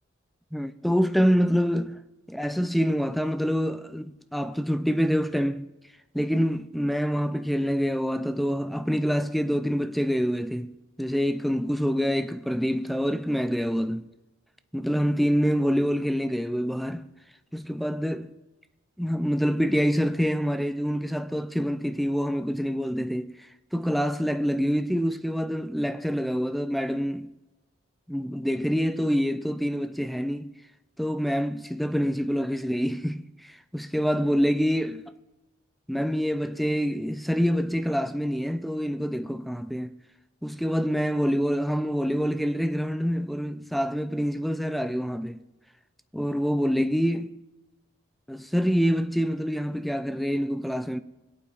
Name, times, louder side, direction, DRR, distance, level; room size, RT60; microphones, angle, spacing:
voice 1, 0.5-2.0 2.3-5.7 6.1-10.7 11.0-14.1 14.7-17.1 17.5-18.3 19.0-23.3 23.7-27.3 28.1-30.5 31.0-33.3 33.7-35.0 35.9-39.9 40.4-45.4 46.1-47.3 48.3-51.0, equal, ahead, 0.3 m, -26 dB
23.5 x 8.6 x 2.4 m
head